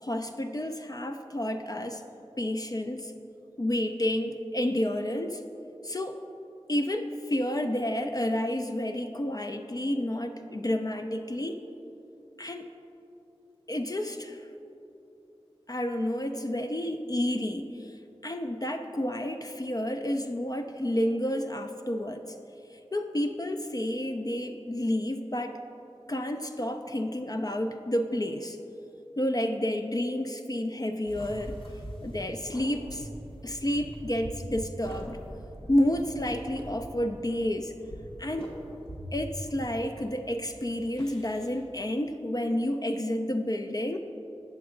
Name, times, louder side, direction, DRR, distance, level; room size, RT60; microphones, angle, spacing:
voice 1, 0.0-2.0 2.4-3.1 3.6-5.4 5.8-6.2 6.7-11.6 12.4-12.7 13.7-14.5 15.7-17.9 18.2-22.2 22.7-25.6 26.1-28.6 29.2-31.5 32.0-33.1 33.4-35.2 35.7-37.7 38.2-38.5 39.1-44.0, left 1 dB, 35° left, 5 dB, 0.4 m, -30 dB
sound 1, 31.1-41.6, equal, 55° left, 1.3 m, -43 dB
8.3 x 6.9 x 3.7 m, 2.9 s
wide cardioid pair, 40°, 11 cm